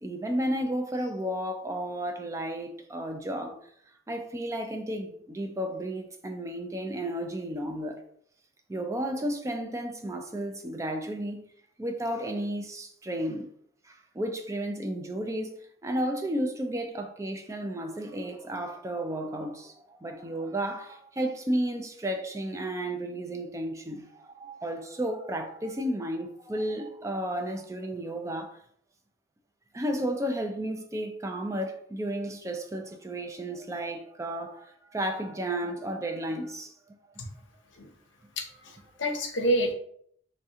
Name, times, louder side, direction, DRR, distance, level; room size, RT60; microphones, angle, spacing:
voice 1, 0.0-3.6 4.1-8.0 8.7-11.4 11.8-13.5 13.8-28.6 29.7-37.0, right 1 dB, 15° right, 0.3 m, -33 dB
voice 2, 38.4-39.7, right 1 dB, 85° left, 0.7 m, -28 dB
3.2 x 2.8 x 3.5 m
head